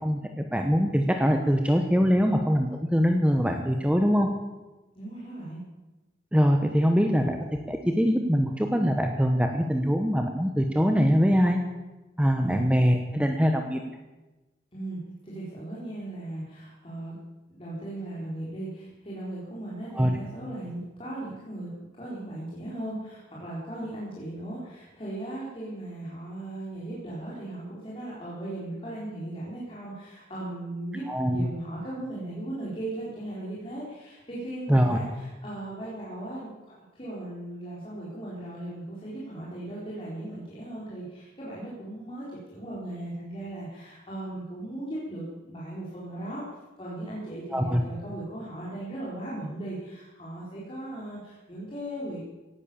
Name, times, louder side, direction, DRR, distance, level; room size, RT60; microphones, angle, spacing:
voice 1, 0.0-4.3 6.3-7.4 7.7-11.6 12.2-13.8 19.9-20.1 31.1-31.5 34.7-35.0 47.5-47.8, equal, 5° right, 4 dB, 1.0 m, -23 dB
voice 2, 4.9-5.6 12.3-12.6 14.7-17.2 17.5-46.4 46.8-52.3, right 1 dB, 30° left, -7 dB, 4.3 m, -37 dB
18.0 x 11.0 x 7.2 m, 1.1 s
head